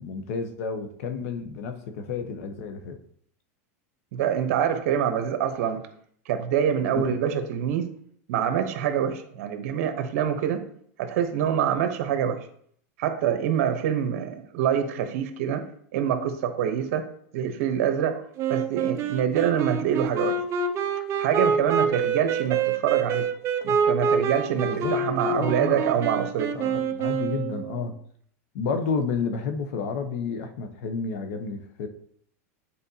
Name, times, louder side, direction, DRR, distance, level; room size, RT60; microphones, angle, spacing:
voice 1, 0.0-3.0 24.5-24.9 25.3-25.8 26.5-27.9 28.5-31.9, left 5 dB, 70° left, 7 dB, 1.1 m, -31 dB
voice 2, 4.1-5.8 6.3-7.9 8.3-10.6 11.0-12.4 13.0-15.6 15.9-17.0 17.3-18.2 18.5-20.3 21.2-23.3 23.6-26.5, right 9 dB, 70° right, 8 dB, 1.0 m, -25 dB
Wind instrument woodwind instrument, 18.4-27.8, right 5 dB, 35° right, 0.7 m, -26 dB
9.4 x 4.3 x 2.9 m, 0.63 s
supercardioid pair, 135°, 8 cm